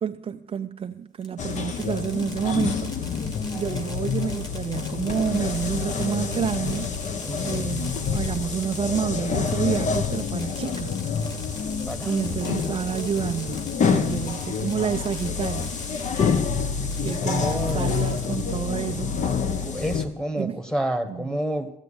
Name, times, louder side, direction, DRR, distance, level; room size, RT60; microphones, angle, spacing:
voice 1, 0.0-3.2 3.5-11.4 12.0-15.7 17.0-19.1 20.4-20.6 21.1-21.4, right 7 dB, 35° right, 0.5 m, -29 dB
Fireworks, 1.2-16.4 16.8-18.7, left 1 dB, 25° left, 2.2 m, -45 dB
sound 1, 1.4-20.0, left 6 dB, 45° left, 1.2 m, -27 dB
voice 2, 7.2-7.7 11.8-12.3 17.0-18.0 19.6-21.7, right 1 dB, 5° left, 1.5 m, -30 dB
15.0 x 8.2 x 8.6 m
cardioid pair, 110°, 17 cm